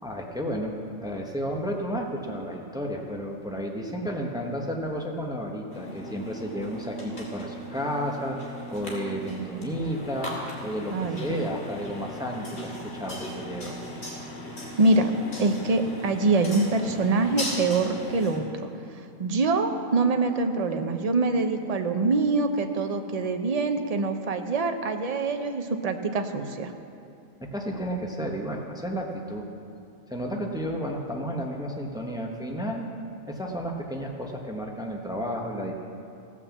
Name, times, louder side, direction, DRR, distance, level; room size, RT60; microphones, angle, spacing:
voice 1, 0.0-10.3 10.6-13.7 27.4-29.4 30.1-32.9 33.3-35.7, equal, 5° right, 0 dB, 0.9 m, -32 dB
sound 1, 5.7-18.4, equal, 50° left, 2.1 m, -38 dB
voice 2, 10.9-11.4 14.8-15.1 15.4-18.7 19.2-26.7, right 3 dB, 40° right, 6 dB, 0.5 m, -25 dB
16.5 x 5.9 x 7.2 m, 2.5 s
omnidirectional pair, 1.4 m